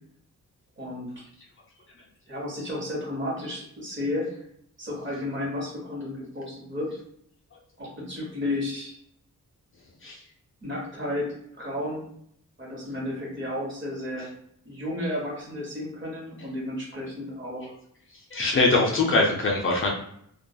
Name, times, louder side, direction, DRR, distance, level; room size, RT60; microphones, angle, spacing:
voice 1, 0.8-1.1 2.3-4.3 4.8-7.0 7.8-8.9 10.6-12.0 12.6-14.3 14.6-17.7, left 1 dB, 35° right, -4 dB, 0.9 m, -32 dB
voice 2, 18.3-19.9, left 2 dB, 40° left, -2 dB, 0.4 m, -22 dB
2.3 x 2.2 x 2.6 m, 0.69 s
wide cardioid pair, 180°, 32 cm